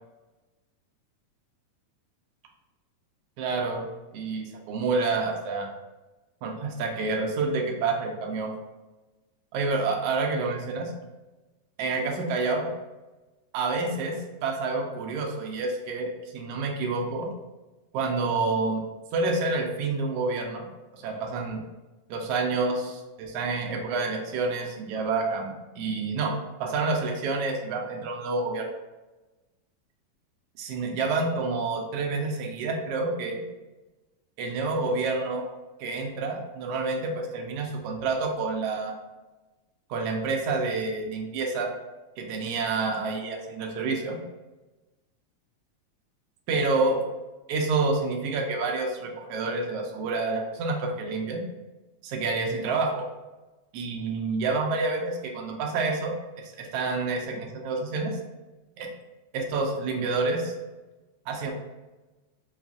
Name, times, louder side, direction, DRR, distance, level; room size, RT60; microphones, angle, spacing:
voice 1, 3.4-5.7 6.4-8.5 9.5-10.9 11.8-12.7 13.5-17.3 17.9-20.7 20.9-21.6 22.1-26.3 26.6-28.7 30.6-33.4 34.4-35.4 35.8-38.9 39.9-41.7 42.2-44.2 46.5-47.0 47.5-51.4 52.0-53.0 53.7-58.2 58.8-58.9 59.3-60.5 61.3-61.5, right 3 dB, 85° right, 1 dB, 1.3 m, -28 dB
6.9 x 2.4 x 2.4 m, 1.1 s
omnidirectional pair, 3.4 m